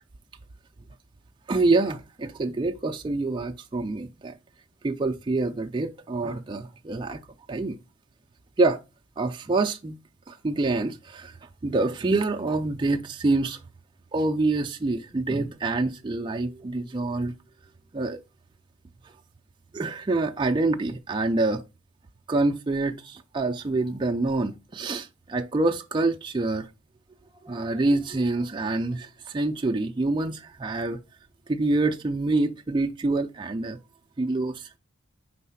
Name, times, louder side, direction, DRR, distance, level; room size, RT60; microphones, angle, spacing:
voice 1, 1.5-4.3 4.8-7.2 7.5-7.8 8.6-8.8 9.2-10.0 10.3-11.3 11.6-13.6 14.1-17.3 17.9-18.2 19.7-21.6 22.3-26.7 27.4-31.0 31.5-33.8 34.2-34.8, right 2 dB, 20° right, 0.3 m, -26 dB
4.6 x 4.0 x 5.6 m
head